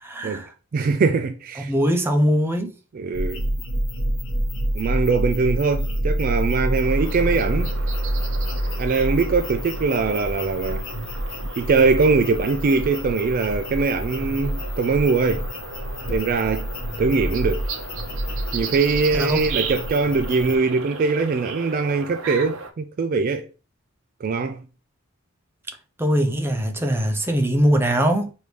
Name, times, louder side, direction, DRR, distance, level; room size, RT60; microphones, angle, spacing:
voice 1, 0.0-0.5 1.7-2.7 19.1-19.4 26.0-28.3, equal, 10° right, 0.6 m, -21 dB
voice 2, 0.7-1.7 2.9-3.4 4.7-7.7 8.8-10.8 11.6-15.5 16.1-16.7 17.0-17.6 18.5-23.5 24.2-24.6, right 4 dB, 45° right, 0.3 m, -22 dB
sound 1, 3.1-20.6, equal, 65° left, 1.0 m, -28 dB
sound 2, 6.8-22.7, right 5 dB, 70° right, 0.7 m, -36 dB
4.7 x 2.7 x 3.3 m
head